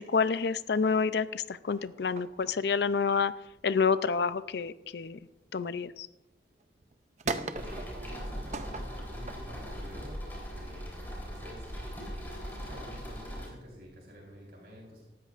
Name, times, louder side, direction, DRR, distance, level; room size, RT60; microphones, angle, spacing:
voice 1, 0.0-3.3 3.6-5.2 5.5-6.1, left 5 dB, 70° left, 15 dB, 0.5 m, -28 dB
sound 1, 1.8-6.0 6.5-11.0 11.7-13.3, right 3 dB, 40° right, 0.6 m, -41 dB
voice 2, 7.2-10.2 10.5-15.1, equal, 60° right, -3 dB, 4.2 m, -48 dB
sound 2, 7.5-13.5, equal, 10° left, 3.6 m, -40 dB
18.0 x 13.5 x 2.5 m, 1.0 s
head